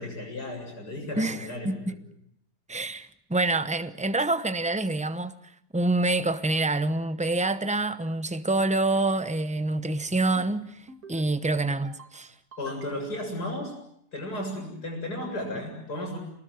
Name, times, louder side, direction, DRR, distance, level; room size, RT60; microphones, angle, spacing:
voice 1, 0.0-2.0 12.6-13.8 14.1-16.2, left 1 dB, 65° left, 8.0 m, -34 dB
voice 2, 1.2-1.9 2.7-5.4 5.7-12.3, right 2 dB, 10° right, 0.4 m, -27 dB
sound 1, 10.1-10.5 10.9-11.3 11.7-12.1 12.5-13.3, right 3 dB, 60° right, 2.7 m, -49 dB
28.0 x 20.0 x 8.0 m
omnidirectional pair, 1.8 m